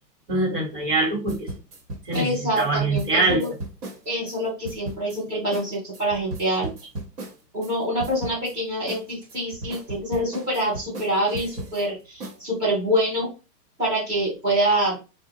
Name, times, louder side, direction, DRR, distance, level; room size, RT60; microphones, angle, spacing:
voice 1, 0.3-1.5 2.0-3.4, right 2 dB, 30° right, 0 dB, 1.1 m, -23 dB
sound 1, 1.3-4.4 4.6-5.2 5.5-5.7 5.9-7.7 8.0-8.5 8.9-11.8 12.2-12.4, right 2 dB, 65° right, 1.2 m, -36 dB
voice 2, 2.1-3.5 4.0-6.7 7.5-13.3 13.8-15.0, right 1 dB, 10° right, -11 dB, 0.6 m, -25 dB
4.0 x 2.2 x 2.7 m, 0.30 s
hypercardioid pair, 160°, 50 cm